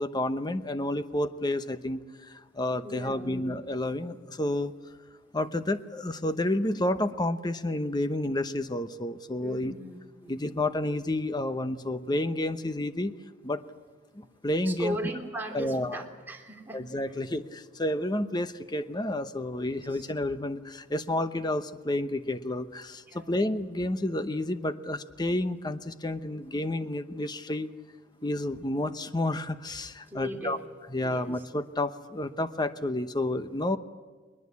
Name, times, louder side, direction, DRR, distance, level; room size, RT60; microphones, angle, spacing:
voice 1, 0.0-4.7 5.3-9.7 10.3-13.1 13.4-13.6 14.1-15.0 15.5-16.0 16.7-27.7 28.2-30.6 30.9-33.8, left 1 dB, 20° left, 11 dB, 0.9 m, -30 dB
voice 2, 2.8-3.4 9.4-10.4 14.6-16.8 19.6-20.1 23.1-23.4 30.1-30.6 31.0-31.3, right 1 dB, 10° right, 0 dB, 3.0 m, -38 dB
21.0 x 21.0 x 8.5 m, 1.4 s
head